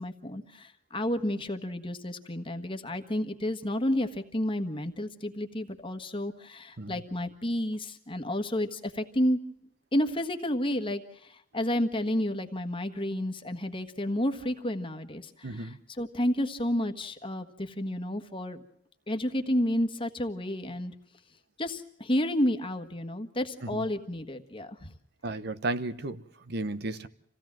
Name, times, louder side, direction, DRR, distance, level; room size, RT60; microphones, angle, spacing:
voice 1, 0.0-9.4 9.9-18.6 19.1-20.9 21.6-24.9, left 1 dB, 25° left, 7 dB, 1.5 m, -31 dB
voice 2, 15.4-15.8 23.6-23.8 25.2-27.1, right 2 dB, 60° right, 12 dB, 1.0 m, -34 dB
27.0 x 16.5 x 7.6 m, 0.71 s
head